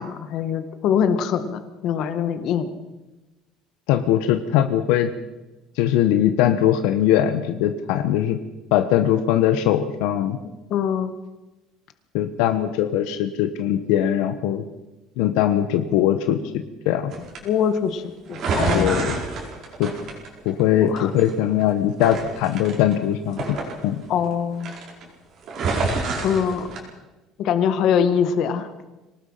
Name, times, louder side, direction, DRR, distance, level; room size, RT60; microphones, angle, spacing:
voice 1, 0.0-2.7 10.4-11.1 17.4-19.1 20.9-21.1 24.1-24.7 26.2-26.7 27.4-28.7, left 7 dB, 50° left, 9 dB, 1.8 m, -23 dB
voice 2, 3.9-5.1 5.8-8.4 8.7-10.4 12.1-14.6 15.2-17.1 18.7-19.2 19.8-19.9 20.4-23.6 23.8-24.0, left 11 dB, 80° left, 9 dB, 1.2 m, -21 dB
sound 1, 17.1-17.4 18.3-20.7 21.0-21.6 22.0-24.3 24.6-25.1 25.4-26.8, right 3 dB, 40° right, 4.7 m, -28 dB
24.0 x 19.0 x 5.8 m, 1.1 s
cardioid pair, 165°, 0 cm